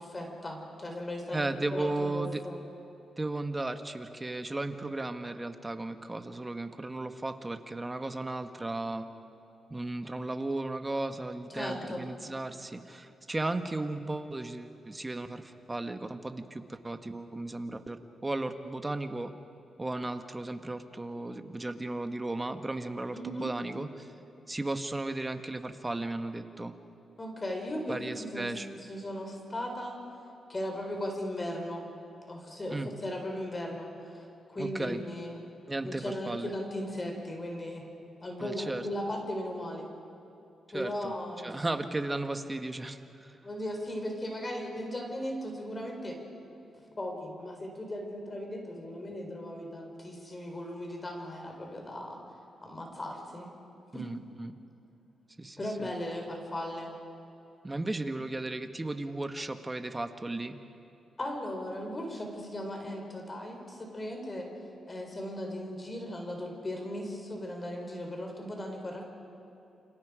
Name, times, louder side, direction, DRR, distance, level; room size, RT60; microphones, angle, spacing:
voice 1, 0.0-2.6 11.6-12.0 23.1-23.5 27.2-30.0 30.5-31.8 32.3-34.2 34.5-35.4 35.8-37.8 38.2-39.9 40.7-41.6 43.4-46.2 47.0-52.2 52.6-53.5 53.9-54.0 55.6-57.0 61.2-64.5 64.9-69.1, left 1 dB, 25° left, 2 dB, 4.2 m, -37 dB
voice 2, 1.3-2.4 3.2-9.0 9.7-19.3 19.8-24.1 24.5-26.7 27.9-28.7 32.7-32.9 34.6-35.0 35.7-36.5 38.4-38.9 40.7-41.1 41.4-43.0 53.9-54.5 55.4-55.9 57.6-60.6, right 2 dB, 20° right, 8 dB, 1.4 m, -35 dB
29.0 x 26.0 x 5.0 m, 2.9 s
cardioid pair, 90°, 0 cm